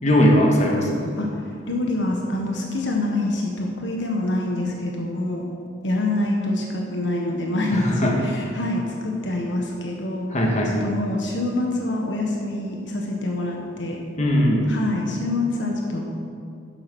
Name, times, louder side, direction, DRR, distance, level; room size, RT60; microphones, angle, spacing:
voice 1, 0.0-1.1 7.7-8.2 10.3-10.7 14.2-14.7, equal, 35° left, -1 dB, 1.6 m, -19 dB
voice 2, 1.7-5.5 5.8-10.3 10.8-14.0 14.7-16.0, left 2 dB, 65° left, 0 dB, 1.3 m, -26 dB
11.0 x 7.4 x 6.2 m, 2.4 s
head